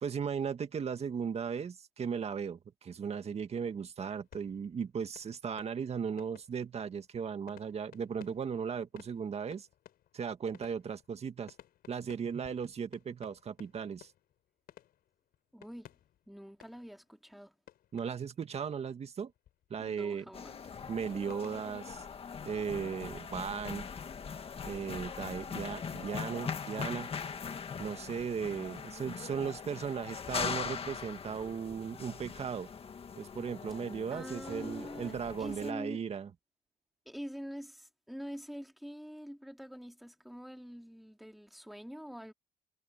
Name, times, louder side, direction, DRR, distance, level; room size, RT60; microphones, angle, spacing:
voice 1, 0.0-9.7 10.1-11.5 11.9-14.1 17.9-19.3 19.7-20.2 20.9-22.0 22.4-23.9 24.6-27.1 27.8-32.7 33.2-36.3, right 6 dB, 40° right, 2.0 m, -37 dB
sound 1, 4.1-17.3 17.7-18.6 19.1-20.0 21.3-21.7, left 12 dB, 65° left, 4.6 m, -59 dB
voice 2, 15.5-15.9 16.3-17.6 19.8-20.6 34.1-36.0 37.1-42.3, equal, ahead, 2.4 m, -45 dB
sound 2, 20.3-35.7, left 6 dB, 35° left, 1.9 m, -41 dB
cardioid pair, 110°, 17 cm